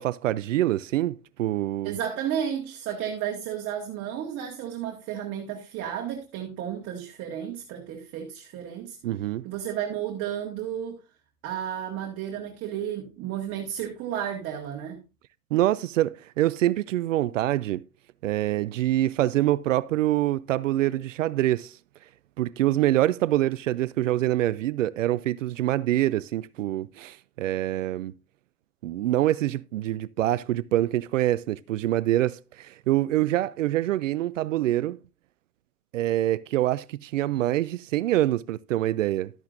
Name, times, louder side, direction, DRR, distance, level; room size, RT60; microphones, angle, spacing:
voice 1, 0.0-2.0 9.0-9.4 15.5-17.8 18.2-21.7 22.4-28.1 28.8-35.0 35.9-39.3, right 14 dB, 60° right, 0.5 m, -25 dB
voice 2, 1.8-9.0 9.4-11.0 11.4-15.0, right 9 dB, 30° right, 1.9 m, -32 dB
12.0 x 9.4 x 2.6 m
hypercardioid pair, 125°, 45 cm